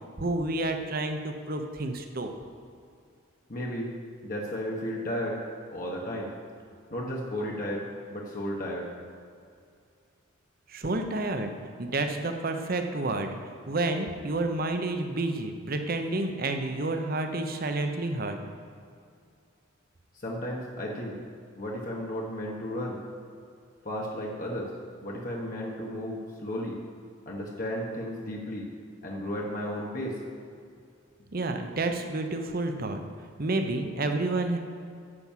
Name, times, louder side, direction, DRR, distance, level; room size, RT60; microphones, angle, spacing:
voice 1, 0.2-2.3 10.7-11.5 11.8-13.3 13.7-18.4 31.3-33.0 33.4-34.6, right 2 dB, 45° right, 6 dB, 0.8 m, -29 dB
voice 2, 3.5-3.9 4.2-5.4 5.7-6.3 6.9-8.9 20.1-21.2 21.5-23.0 23.8-24.7 25.0-26.8 27.3-28.7 29.0-30.2, equal, 45° left, -2 dB, 1.2 m, -34 dB
9.8 x 6.1 x 7.4 m, 2.4 s
head